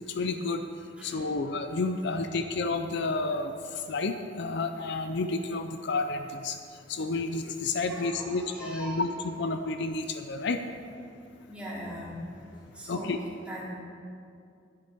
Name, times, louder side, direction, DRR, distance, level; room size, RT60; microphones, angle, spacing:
voice 1, 0.1-0.6 1.0-6.6 6.9-10.6 12.9-13.2, left 3 dB, 65° left, 8 dB, 0.5 m, -30 dB
voice 2, 7.9-9.1 11.5-12.1 12.8-13.1 13.5-13.6, right 1 dB, 5° right, -7 dB, 2.9 m, -40 dB
10.5 x 10.5 x 4.5 m, 2.4 s
head